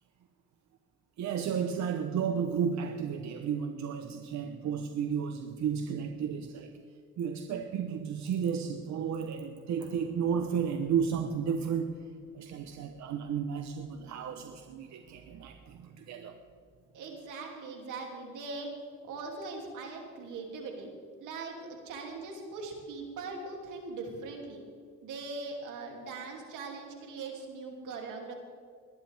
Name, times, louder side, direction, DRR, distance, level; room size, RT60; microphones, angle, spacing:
voice 1, 1.2-6.7 7.2-12.1 12.3-16.4, right 7 dB, 70° right, 6 dB, 1.0 m, -33 dB
voice 2, 16.9-18.7 19.1-20.9 21.2-21.5 21.8-24.6 25.0-28.3, right 3 dB, 90° right, 1 dB, 2.8 m, -40 dB
21.0 x 11.0 x 3.5 m, 2.1 s
cardioid pair, 90°, 30 cm